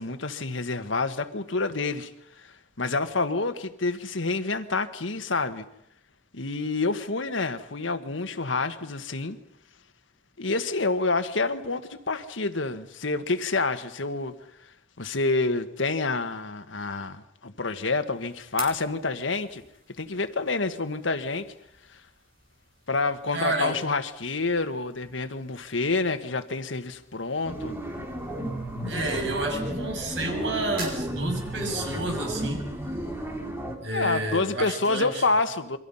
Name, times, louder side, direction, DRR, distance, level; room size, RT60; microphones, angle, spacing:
voice 1, 0.0-2.1 2.4-5.6 6.3-9.4 10.4-14.3 15.0-19.6 20.0-21.5 21.9-22.0 22.9-27.7 33.9-35.8, left 3 dB, 90° left, 1.6 m, -28 dB
sound 1, 17.7-34.7, right 4 dB, 55° right, 7.0 m, -49 dB
voice 2, 23.3-23.8 28.9-32.7 33.8-35.1, right 2 dB, 70° right, 6.6 m, -30 dB
sound 2, 27.5-33.8, right 1 dB, 15° right, 4.2 m, -33 dB
28.5 x 24.5 x 5.7 m
head